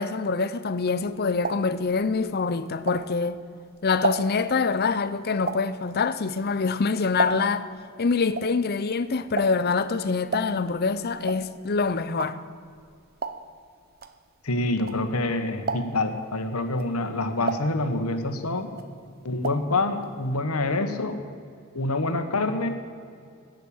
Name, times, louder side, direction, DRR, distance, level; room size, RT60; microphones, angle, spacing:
voice 1, 0.0-3.4 3.8-7.7 8.0-12.4, left 4 dB, 45° left, 0.6 m, -25 dB
sound 1, 0.9-3.4 3.8-7.7 8.0-15.3 15.6-16.2 16.7-18.4 18.7-19.8 20.0-20.1 20.4-20.5, right 4 dB, 45° right, 0.7 m, -33 dB
voice 2, 14.4-18.7 19.2-21.3 21.7-22.7, left 2 dB, 85° left, 1.2 m, -26 dB
15.5 x 6.6 x 8.6 m
head